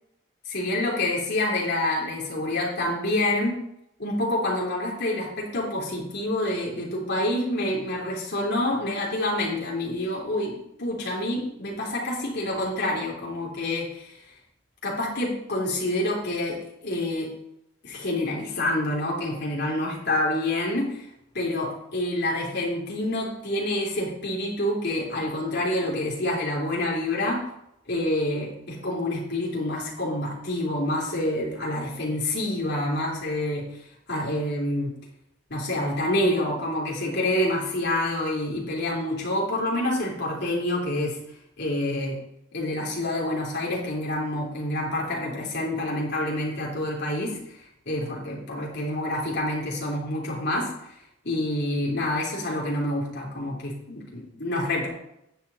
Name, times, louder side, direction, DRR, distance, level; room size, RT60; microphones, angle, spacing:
voice 1, 0.4-3.6 4.0-14.2 14.8-17.3 17.8-21.0 21.3-27.4 27.9-33.6 34.1-34.9 35.5-41.2 41.6-42.2 42.5-50.7 51.2-54.9, left 1 dB, 50° left, -3 dB, 3.2 m, -27 dB
9.6 x 8.1 x 4.1 m, 0.80 s
head